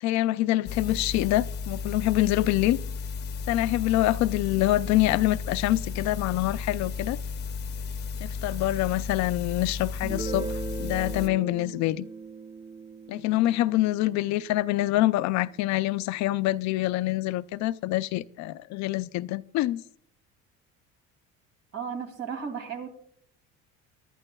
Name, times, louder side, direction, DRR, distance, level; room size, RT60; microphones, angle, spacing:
voice 1, 0.0-2.8 3.5-7.2 8.2-12.1 13.1-19.8, left 16 dB, 70° left, 0.5 m, -25 dB
sound 1, 0.7-11.3, left 5 dB, 35° left, 0.7 m, -34 dB
Guitar, 10.0-15.5, right 4 dB, 20° right, 3.6 m, -39 dB
voice 2, 21.7-22.9, right 6 dB, 55° right, 2.6 m, -34 dB
23.5 x 11.5 x 2.3 m
cardioid pair, 140°, 29 cm